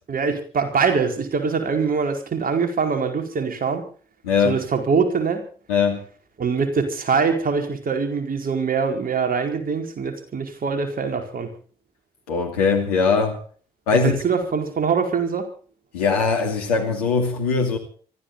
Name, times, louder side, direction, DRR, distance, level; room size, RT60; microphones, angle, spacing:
voice 1, 0.1-3.9 4.4-5.4 6.4-11.5 14.0-15.5, right 5 dB, 50° right, 4.8 m, -23 dB
voice 2, 4.2-4.6 5.7-6.0 12.3-13.4 13.9-14.1 15.9-17.8, left 5 dB, 90° left, 2.6 m, -21 dB
24.5 x 14.5 x 4.0 m
hypercardioid pair, 45°, 19 cm